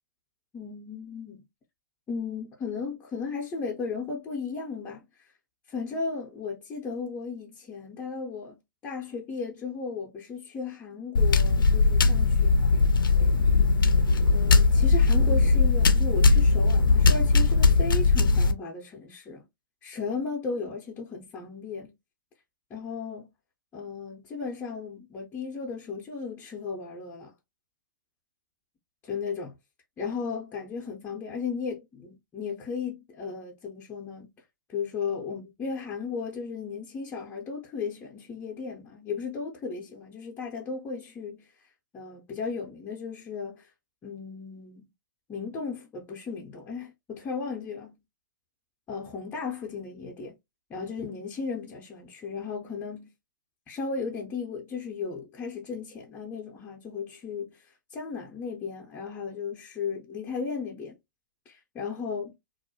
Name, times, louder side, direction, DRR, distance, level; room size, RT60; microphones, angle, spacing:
voice 1, 0.5-1.4 2.1-5.3 5.7-12.8 13.2-13.3 14.3-19.5 19.8-21.9 22.7-23.3 23.7-27.3 29.1-29.6 30.0-34.3 34.7-41.5 41.9-43.7 44.0-44.8 45.3-47.9 48.9-50.4 50.7-53.1 53.7-57.7 57.9-61.0 61.5-62.4, left 5 dB, 15° left, 0.5 m, -35 dB
sound 1, 11.1-18.5, left 3 dB, 80° left, 0.4 m, -20 dB
2.3 x 2.0 x 2.6 m
figure-of-eight pair, 120°, 11 cm